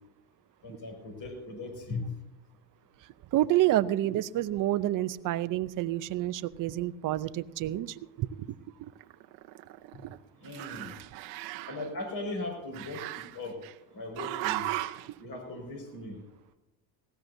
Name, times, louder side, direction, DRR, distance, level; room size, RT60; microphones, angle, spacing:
voice 1, 0.6-2.1 9.9-10.0 10.4-11.0 11.7-13.6 13.9-14.7 15.2-16.2, left 2 dB, 50° left, 2 dB, 5.6 m, -38 dB
voice 2, 3.3-8.5 10.0-10.1, right 14 dB, 45° right, 15 dB, 0.6 m, -28 dB
Growling, 8.9-10.2 10.4-11.9 12.7-13.7 14.2-15.1, right 16 dB, 85° right, 0.9 m, -37 dB
19.5 x 17.0 x 2.7 m, 0.97 s
cardioid pair, 120°, 44 cm